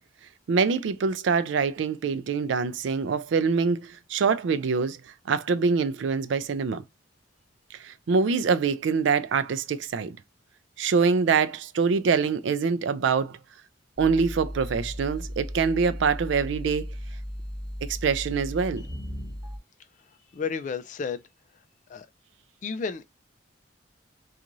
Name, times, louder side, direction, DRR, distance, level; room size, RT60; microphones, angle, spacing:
voice 1, 0.5-5.0 5.3-6.8 7.8-10.2 10.8-13.4 14.0-16.9 17.8-18.8, right 5 dB, 70° right, 0.4 m, -24 dB
sound 1, 14.0-19.6, equal, 15° right, 1.1 m, -36 dB
voice 2, 20.3-21.2 21.9-22.1 22.6-23.0, left 5 dB, 40° left, 0.3 m, -31 dB
2.5 x 2.4 x 3.0 m
head